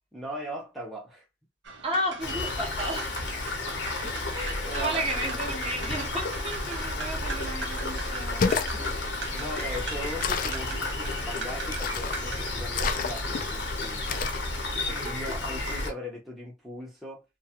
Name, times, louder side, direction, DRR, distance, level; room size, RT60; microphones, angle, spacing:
voice 1, 0.1-1.2 4.0-4.3 4.6-5.5 8.7-8.8 9.3-14.2 14.8-17.2, equal, ahead, 0.7 m, -39 dB
sound 1, 1.6-12.5, right 5 dB, 90° right, 0.6 m, -41 dB
voice 2, 1.8-3.1 4.3-8.4 8.8-8.9 9.5-9.7 14.9-15.2, right 1 dB, 30° right, 0.9 m, -33 dB
Rain, 2.2-15.9, left 2 dB, 80° left, 0.8 m, -32 dB
sound 2, 8.3-8.8 10.2-10.7 11.7-12.2 12.7-13.4 14.1-14.5, left 5 dB, 50° left, 0.3 m, -29 dB
2.8 x 2.3 x 2.8 m
head